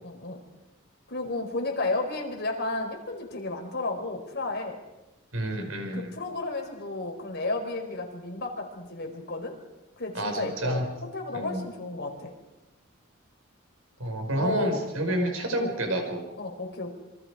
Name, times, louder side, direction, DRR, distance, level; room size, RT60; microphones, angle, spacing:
voice 1, 0.0-0.4 1.1-4.8 5.9-9.6 10.0-10.8 11.1-12.3 14.3-14.8 15.1-15.3 16.4-16.9, left 2 dB, 55° left, 3 dB, 4.6 m, -32 dB
voice 2, 5.3-6.1 10.1-10.9 11.3-11.7 14.0-16.3, right 1 dB, 85° right, 4 dB, 5.4 m, -29 dB
27.5 x 24.5 x 5.0 m, 0.98 s
head